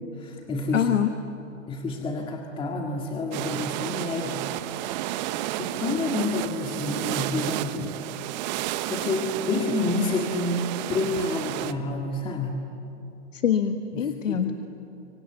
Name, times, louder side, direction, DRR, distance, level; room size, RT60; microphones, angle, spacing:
voice 1, 0.2-0.9 1.7-4.5 5.0-5.3 5.6-8.0 8.5-12.6 13.9-14.4, left 2 dB, 15° left, 1 dB, 2.0 m, -29 dB
voice 2, 0.7-1.1 13.3-14.5, left 8 dB, 80° left, 6 dB, 1.6 m, -24 dB
sound 1, 3.3-11.7, right 14 dB, 35° right, 0.9 m, -31 dB
25.5 x 24.5 x 9.2 m, 2.8 s
hypercardioid pair, 140°, 38 cm